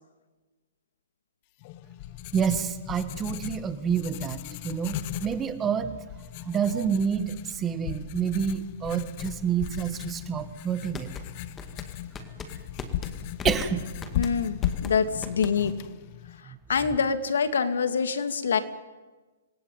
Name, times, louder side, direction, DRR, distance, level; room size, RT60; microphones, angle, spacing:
Writing, 1.6-16.4, left 13 dB, 35° left, 0.9 m, -37 dB
voice 1, 2.3-4.4 4.6-5.9 6.4-11.1 13.4-13.8, right 7 dB, 15° right, 11 dB, 1.5 m, -28 dB
sound 1, 10.7-15.9, left 4 dB, 15° left, 2.0 m, -40 dB
voice 2, 14.1-15.7 16.4-18.6, left 6 dB, 85° left, 10 dB, 2.6 m, -26 dB
26.0 x 20.0 x 9.4 m, 1.3 s
hypercardioid pair, 165°, 0 cm